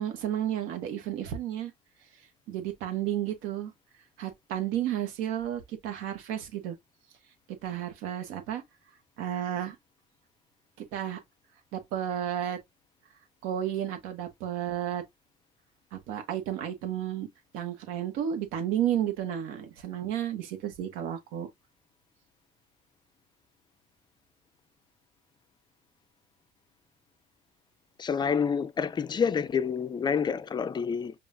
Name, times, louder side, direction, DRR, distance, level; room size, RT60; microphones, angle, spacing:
voice 1, 0.0-1.7 2.5-3.7 4.2-6.8 7.6-8.6 9.2-9.8 10.8-11.2 11.7-12.6 13.4-15.0 15.9-17.3 17.5-21.5, right 10 dB, 75° right, 1.3 m, -32 dB
voice 2, 28.0-31.1, left 6 dB, 20° left, 0.4 m, -28 dB
5.4 x 2.4 x 2.6 m
supercardioid pair, 90°, 21 cm